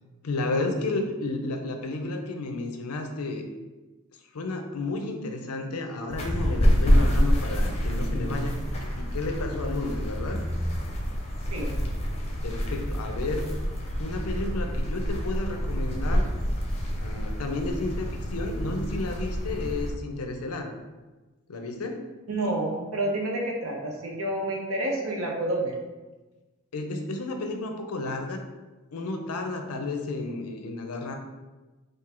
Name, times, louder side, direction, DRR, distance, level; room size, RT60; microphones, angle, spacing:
voice 1, 0.2-3.5 4.3-10.4 12.4-13.5 14.0-16.3 17.0-20.7 21.5-22.1 26.7-28.4 28.9-31.1, left 2 dB, 80° left, 4 dB, 0.6 m, -32 dB
sound 1, 6.1-19.9, equal, 30° left, 0.6 m, -27 dB
voice 2, 22.3-25.7, right 1 dB, 70° right, 0 dB, 0.8 m, -29 dB
3.7 x 2.6 x 4.3 m, 1.2 s
head